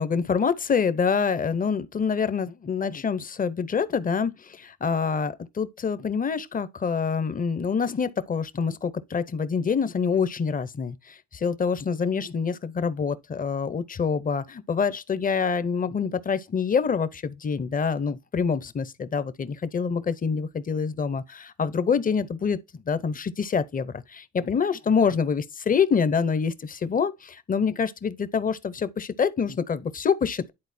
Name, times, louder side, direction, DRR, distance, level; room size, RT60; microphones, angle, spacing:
voice 1, 0.0-30.5, left 6 dB, 30° left, 0.6 m, -26 dB
10.5 x 4.0 x 2.6 m
cardioid pair, 90°, 30 cm